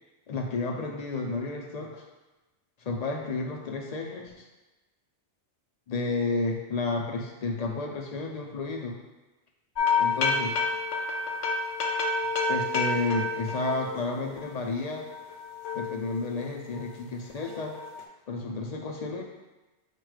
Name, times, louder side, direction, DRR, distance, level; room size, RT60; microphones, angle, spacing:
voice 1, 0.3-2.0 2.8-4.5 5.9-9.0 10.0-10.6 12.5-15.0 15.7-17.7 18.3-19.2, left 3 dB, 55° left, 1 dB, 0.5 m, -31 dB
sound 1, 9.8-14.5 14.9-17.0 17.4-18.0, left 3 dB, 75° left, 0.9 m, -30 dB
5.0 x 2.2 x 4.7 m, 1.1 s
omnidirectional pair, 1.2 m